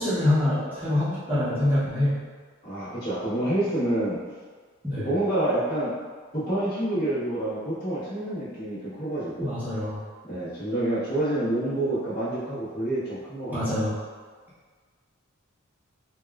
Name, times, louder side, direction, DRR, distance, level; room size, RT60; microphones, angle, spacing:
voice 1, 0.0-2.2 4.8-5.1 9.4-10.0 13.5-13.9, left 1 dB, 10° right, -12 dB, 0.7 m, -25 dB
voice 2, 2.6-4.2 5.0-5.9 6.3-9.6 10.2-13.6, right 1 dB, 45° left, -12 dB, 1.3 m, -28 dB
3.5 x 2.3 x 2.3 m, 1.5 s
head